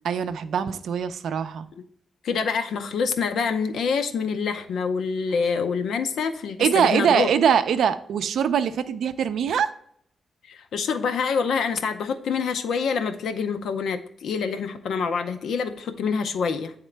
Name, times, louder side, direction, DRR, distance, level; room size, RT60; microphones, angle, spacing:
voice 1, 0.0-1.7 6.6-9.7, right 7 dB, 75° right, 11 dB, 0.4 m, -22 dB
voice 2, 2.2-7.3 10.5-16.7, left 5 dB, 80° left, 8 dB, 0.6 m, -26 dB
9.1 x 3.6 x 3.2 m, 0.65 s
wide cardioid pair, 175°, 0 cm